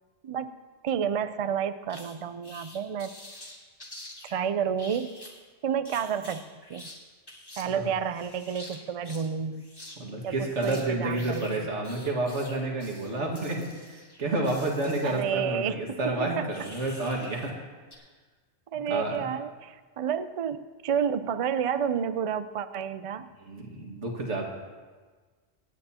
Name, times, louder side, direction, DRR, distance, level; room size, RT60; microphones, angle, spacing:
voice 1, 0.8-3.2 4.3-5.1 5.6-6.4 6.7-6.9 7.6-9.7 10.2-11.7 15.0-16.5 18.7-23.3, right 7 dB, 55° right, 12 dB, 0.4 m, -30 dB
sound 1, 1.9-2.1 2.4-4.4 4.8-5.4 5.9-7.0 7.3-7.6 8.0-9.3 9.5-10.0 10.2-15.2 16.5-17.6 17.9-18.0, left 1 dB, 20° left, 1.8 m, -47 dB
voice 2, 10.0-17.5 18.9-19.3 23.5-24.4, right 2 dB, 85° right, -1 dB, 2.1 m, -30 dB
25.5 x 9.2 x 2.8 m, 1.4 s
omnidirectional pair, 1.2 m